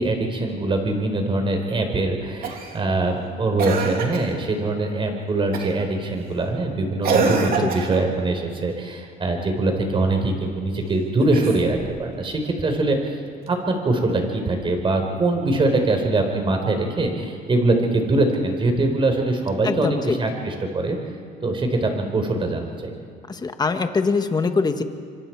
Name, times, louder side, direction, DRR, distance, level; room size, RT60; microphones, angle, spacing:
voice 1, 0.0-13.0 13.5-21.0 21.4-22.9, right 2 dB, 30° right, 4 dB, 4.3 m, -23 dB
Cough, 2.4-2.8 3.6-4.4 5.5-5.9 7.0-8.1 11.2-12.0 13.5-13.6, right 5 dB, 60° right, 3.0 m, -25 dB
voice 2, 19.6-20.2 23.3-24.8, left 4 dB, 25° left, 7 dB, 1.5 m, -23 dB
26.5 x 25.0 x 4.7 m, 2.3 s
cardioid pair, 110°, 17 cm